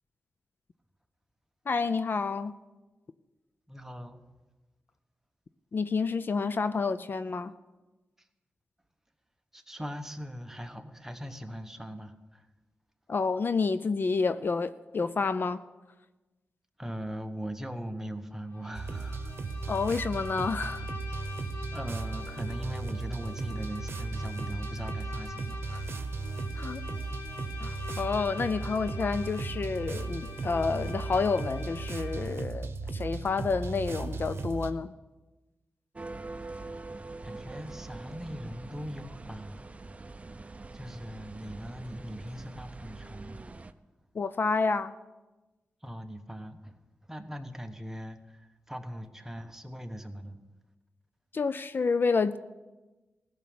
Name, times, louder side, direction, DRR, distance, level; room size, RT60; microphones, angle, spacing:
voice 1, 1.7-2.5 5.7-7.5 13.1-15.6 19.7-20.9 26.6-26.8 27.6-34.9 44.1-44.9 51.3-52.4, left 4 dB, 50° left, 0.4 m, -29 dB
voice 2, 3.7-4.3 9.5-12.5 16.8-19.3 21.7-25.9 37.2-39.7 40.7-43.4 45.8-46.7 47.1-50.4, equal, 10° right, 1.1 m, -40 dB
Bowed string instrument, 18.5-32.4, left 3 dB, 85° left, 1.7 m, -45 dB
sound 1, 18.7-34.7, right 3 dB, 65° right, 0.9 m, -36 dB
sound 2, 35.9-43.7, right 3 dB, 30° right, 0.6 m, -44 dB
16.5 x 6.2 x 8.6 m
wide cardioid pair, 95°, 5 cm